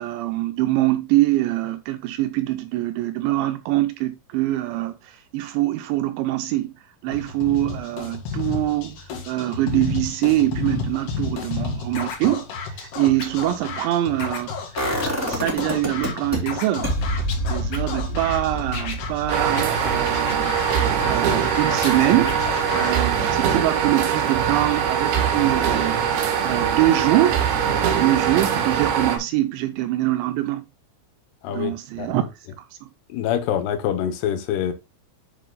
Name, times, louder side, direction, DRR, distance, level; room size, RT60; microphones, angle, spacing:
voice 1, 0.0-6.8 7.0-14.5 15.0-16.9 17.5-26.1 26.4-27.4 27.9-30.6 31.5-32.3 32.6-32.9, right 15 dB, 85° right, 2.7 m, -24 dB
Scratching (performance technique), 7.1-23.0, left 5 dB, 60° left, 3.5 m, -32 dB
sound 1, 14.8-16.4 16.8-22.7 23.0-23.1, equal, 5° right, 2.3 m, -29 dB
sound 2, 19.3-29.2, right 8 dB, 65° right, 2.9 m, -22 dB
voice 2, 31.4-32.2 33.1-34.7, left 9 dB, 80° left, 2.5 m, -25 dB
11.0 x 6.8 x 2.3 m
omnidirectional pair, 5.8 m